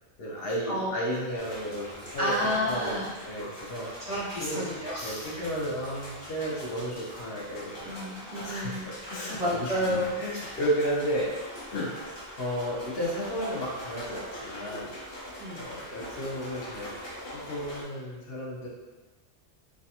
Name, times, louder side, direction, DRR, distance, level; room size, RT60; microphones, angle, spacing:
voice 1, 0.2-2.3 2.7-4.1 4.4-4.6 5.0-7.8 8.4-11.3 11.7-14.9 15.5-16.9 17.2-18.7, equal, 60° left, -5 dB, 0.9 m, -33 dB
sound 1, 1.4-17.8, equal, 25° left, 0.8 m, -42 dB
voice 2, 2.2-3.1 4.1-5.3 7.8-8.9 9.3-10.2 15.4-15.6, equal, 45° right, -8 dB, 0.6 m, -30 dB
3.2 x 2.3 x 2.8 m, 1.2 s
omnidirectional pair, 1.2 m